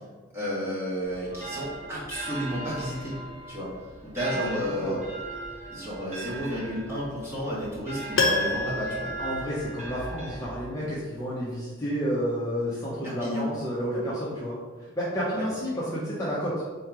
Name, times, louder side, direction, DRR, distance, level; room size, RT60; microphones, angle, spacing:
voice 1, 0.3-3.2 3.5-3.7 4.0-5.0 5.7-9.1 13.0-13.5 15.3-15.5, equal, 10° right, -8 dB, 1.5 m, -32 dB
sound 1, 1.0-11.0, right 2 dB, 35° right, 1.0 m, -39 dB
voice 2, 4.5-5.0 9.2-14.5 15.0-16.6, equal, 15° left, -8 dB, 0.7 m, -30 dB
Piano, 8.2-10.2 10.5-10.6, left 3 dB, 70° left, 0.6 m, -28 dB
3.7 x 3.0 x 4.6 m, 1.5 s
head